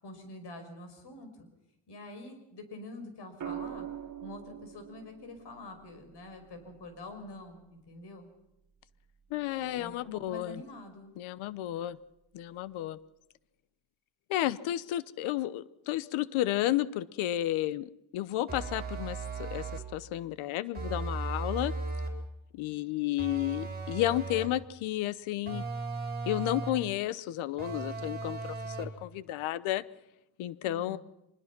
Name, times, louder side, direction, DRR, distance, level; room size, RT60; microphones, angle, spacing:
voice 1, 0.0-1.5 1.9-3.9 4.2-8.3 9.8-11.1 30.6-31.0, left 2 dB, 60° left, 7 dB, 5.8 m, -46 dB
sound 1, 3.4-7.5 9.2-9.6, right 9 dB, 40° right, 1.3 m, -44 dB
voice 2, 9.3-10.6 11.2-12.0 12.3-13.0 14.3-21.7 22.5-25.6 26.3-29.8 30.4-31.0, left 14 dB, 90° left, 18 dB, 1.0 m, -32 dB
sound 2, 18.5-20.0 20.7-22.3 23.2-24.6 25.5-26.9 27.6-29.0, right 3 dB, 20° right, 4.5 m, -37 dB
24.5 x 21.0 x 6.0 m, 0.88 s
cardioid pair, 110°, 47 cm